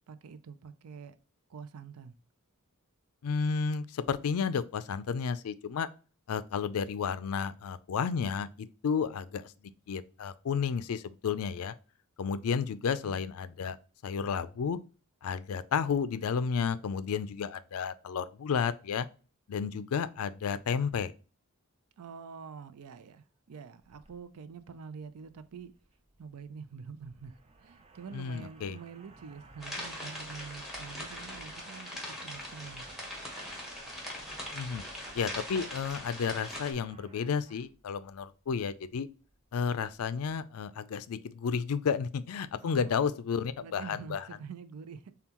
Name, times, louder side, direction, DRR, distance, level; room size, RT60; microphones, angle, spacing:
voice 1, 0.1-1.2 1.5-2.2 13.0-13.2 22.0-25.7 26.2-32.9 42.6-43.0 43.6-45.1, right 6 dB, 80° right, 0.5 m, -46 dB
voice 2, 3.2-5.9 6.3-9.5 9.9-11.7 12.2-13.8 14.0-14.8 15.2-19.1 19.5-21.1 28.1-28.8 34.5-34.8 35.1-39.1 39.5-44.2, left 6 dB, 75° left, 0.4 m, -32 dB
sound 1, 23.8-40.4, right 2 dB, 25° right, 0.5 m, -57 dB
sound 2, 29.6-36.7, left 1 dB, ahead, 1.2 m, -41 dB
7.0 x 2.3 x 2.9 m
head